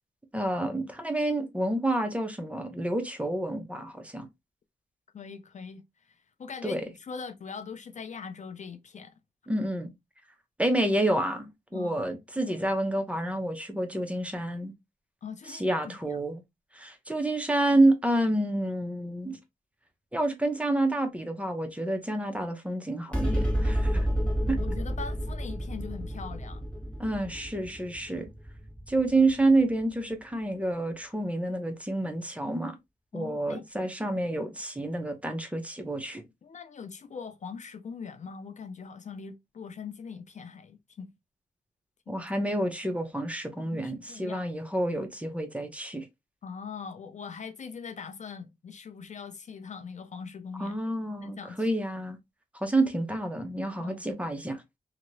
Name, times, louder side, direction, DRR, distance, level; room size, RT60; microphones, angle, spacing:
voice 1, 0.3-4.3 6.6-6.8 9.5-9.9 10.6-14.7 15.5-16.4 16.7-19.4 20.1-24.1 24.5-24.6 27.0-28.3 28.9-32.8 33.1-36.2 42.1-46.1 50.6-52.2 52.5-54.6, right 1 dB, 10° right, 0.8 m, -28 dB
voice 2, 5.1-9.1 11.7-12.0 15.2-16.2 24.4-26.6 33.1-33.6 36.4-41.1 42.1-42.2 43.6-44.5 46.4-50.8 51.2-51.7 53.8-54.0, left 6 dB, 50° left, 0.5 m, -41 dB
sound 1, 23.1-29.8, equal, 10° left, 1.6 m, -30 dB
2.9 x 2.8 x 2.6 m
cardioid pair, 80°, 16 cm